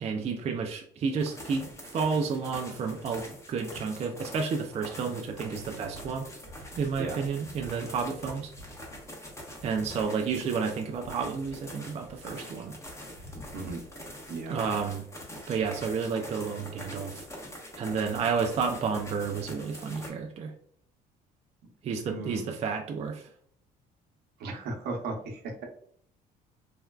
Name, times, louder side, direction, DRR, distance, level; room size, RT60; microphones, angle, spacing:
voice 1, 0.0-6.3 6.8-8.5 9.6-12.7 14.5-15.1 15.5-17.2 17.8-20.5 21.8-23.3, right 5 dB, 40° right, 3 dB, 0.4 m, -31 dB
sound 1, 1.2-20.1, equal, 15° left, 0.9 m, -44 dB
voice 2, 14.3-14.6 22.1-22.4 24.4-25.6, right 3 dB, 75° right, 1 dB, 0.8 m, -36 dB
3.4 x 2.3 x 2.2 m, 0.62 s
cardioid pair, 110°, 17 cm